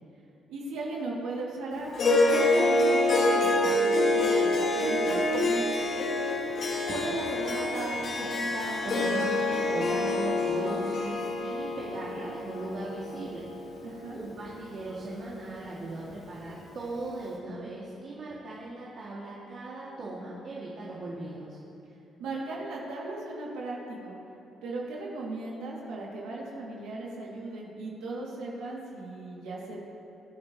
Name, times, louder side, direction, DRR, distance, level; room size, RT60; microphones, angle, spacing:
voice 1, 0.5-5.8 13.8-14.2 22.2-24.2 24.6-29.8, right 2 dB, 80° right, -4 dB, 2.7 m, -37 dB
Harp, 1.9-14.5, left 2 dB, 60° left, 3.1 m, -27 dB
voice 2, 6.9-13.7 14.1-21.6, right 2 dB, 55° right, -6 dB, 2.5 m, -38 dB
24.0 x 9.7 x 3.2 m, 3.0 s
supercardioid pair, 60°, 0 cm